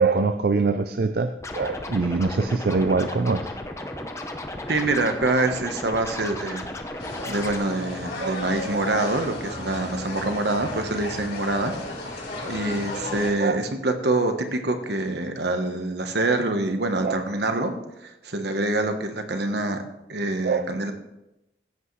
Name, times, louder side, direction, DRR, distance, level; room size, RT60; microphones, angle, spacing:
voice 1, 0.0-3.5 8.2-8.4 13.4-13.6 17.0-17.2 20.4-20.7, right 4 dB, 60° right, 9 dB, 0.4 m, -23 dB
Scratching (performance technique), 1.4-7.6, left 1 dB, 15° left, 0.8 m, -35 dB
voice 2, 4.7-6.6 7.2-11.7 12.4-17.7 18.0-19.8 20.1-20.9, right 2 dB, 75° right, 6 dB, 1.2 m, -25 dB
sound 1, 7.0-13.3, left 2 dB, 85° left, 4.8 m, -34 dB
15.5 x 8.2 x 3.2 m, 0.90 s
head